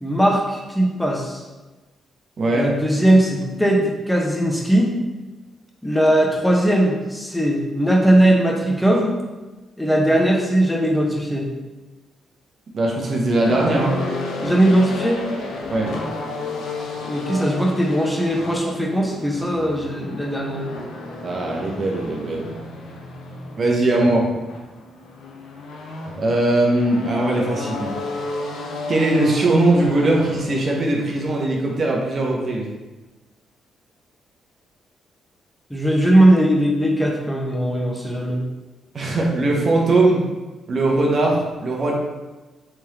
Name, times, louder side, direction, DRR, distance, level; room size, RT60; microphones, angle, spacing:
voice 1, 0.0-1.4 2.5-4.9 5.8-9.1 9.8-11.5 14.4-15.2 17.0-20.7 35.7-38.4, right 1 dB, 5° left, -1 dB, 0.9 m, -19 dB
voice 2, 2.4-2.7 12.7-14.0 15.7-15.9 21.2-22.5 23.6-24.3 26.2-27.9 28.9-32.7 38.9-40.2 40.7-41.9, right 2 dB, 55° right, -1 dB, 0.8 m, -20 dB
sound 1, 13.4-31.3, left 2 dB, 85° left, 0.6 m, -32 dB
3.5 x 3.2 x 2.9 m, 1.2 s
supercardioid pair, 65°, 0 cm